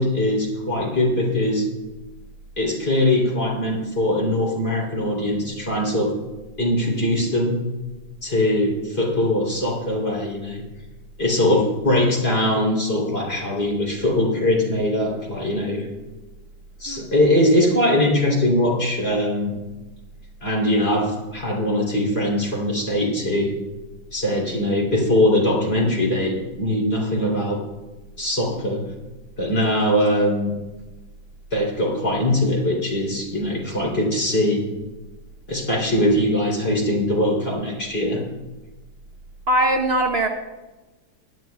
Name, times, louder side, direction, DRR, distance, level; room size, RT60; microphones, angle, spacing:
voice 1, 0.0-1.6 2.6-6.1 6.6-7.6 8.2-10.6 11.2-15.9 16.8-19.6 20.4-23.5 24.1-27.6 28.2-28.8 29.4-30.5 31.5-34.6 35.5-38.2, left 1 dB, 35° left, -2 dB, 3.4 m, -21 dB
voice 2, 39.5-40.3, right 1 dB, 50° right, 3 dB, 0.8 m, -21 dB
19.5 x 11.0 x 2.3 m, 1.1 s
omnidirectional pair, 1.9 m